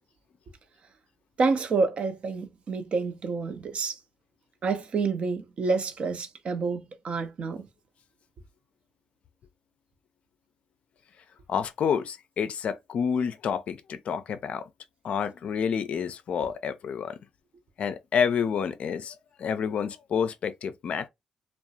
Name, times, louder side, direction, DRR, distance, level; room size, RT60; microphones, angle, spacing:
voice 1, 1.4-3.9 4.6-7.6, right 4 dB, 55° right, 0.5 m, -28 dB
voice 2, 11.5-14.6 15.0-17.2 17.8-21.1, left 7 dB, 65° left, 0.4 m, -29 dB
2.3 x 2.1 x 2.7 m
supercardioid pair, 60°, 2 cm